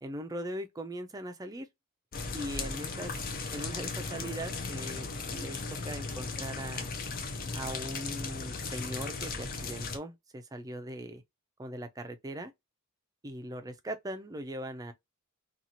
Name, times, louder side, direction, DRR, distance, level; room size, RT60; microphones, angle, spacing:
voice 1, 0.0-1.7 2.3-3.2 3.5-6.9 7.5-11.2 11.6-12.5 13.2-14.9, right 1 dB, 15° right, 0.4 m, -40 dB
sound 1, 2.1-10.0, left 4 dB, 40° left, 0.5 m, -37 dB
2.8 x 2.4 x 2.8 m
head